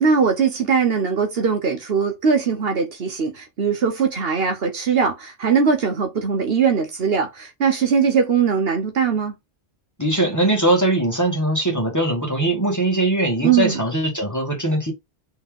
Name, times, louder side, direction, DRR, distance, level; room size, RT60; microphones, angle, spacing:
voice 1, 0.0-9.3 13.4-13.8, right 6 dB, 60° right, 1.1 m, -20 dB
voice 2, 10.0-14.9, right 1 dB, 15° left, 1.6 m, -21 dB
4.2 x 3.4 x 3.6 m
omnidirectional pair, 1.2 m